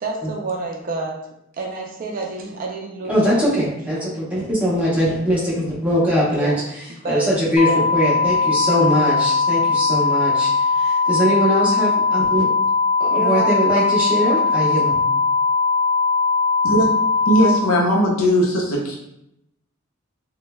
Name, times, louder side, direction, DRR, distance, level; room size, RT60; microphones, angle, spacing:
voice 1, 0.0-3.4 3.9-4.1 6.3-6.5 7.0-7.3 7.7-7.8 13.1-14.7, right 3 dB, 40° right, 1 dB, 0.4 m, -29 dB
voice 2, 3.1-12.5 13.0-15.0, equal, 5° right, -8 dB, 0.8 m, -21 dB
sound 1, 7.6-17.6, left 4 dB, 20° left, 1.1 m, -19 dB
voice 3, 17.3-19.0, equal, 80° left, -2 dB, 0.6 m, -18 dB
3.0 x 2.1 x 2.2 m, 0.80 s
head